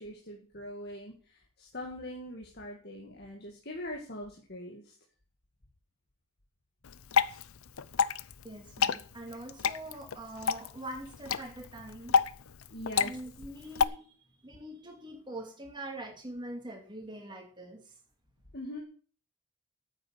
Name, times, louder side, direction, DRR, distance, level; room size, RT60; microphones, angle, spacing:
voice 1, 0.0-4.9 12.7-13.1 18.5-18.8, left 1 dB, 45° left, 0 dB, 2.2 m, -42 dB
Water / Drip, 6.8-13.8, left 6 dB, 75° left, 0.6 m, -30 dB
voice 2, 8.4-12.2 13.0-14.1 14.4-17.9, right 1 dB, 20° right, 3 dB, 2.6 m, -43 dB
9.5 x 8.1 x 9.0 m, 0.43 s
head